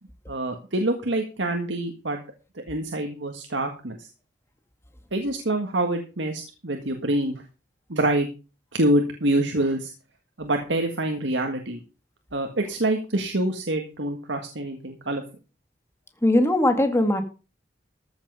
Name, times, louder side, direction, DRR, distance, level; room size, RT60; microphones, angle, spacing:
voice 1, 0.3-2.2 2.7-4.1 5.1-7.4 7.9-8.3 8.7-9.9 10.4-11.8 12.3-15.2, right 1 dB, 80° right, 4 dB, 1.7 m, -26 dB
voice 2, 16.2-17.2, left 1 dB, 15° left, 7 dB, 1.9 m, -20 dB
14.5 x 7.5 x 5.5 m, 0.33 s
head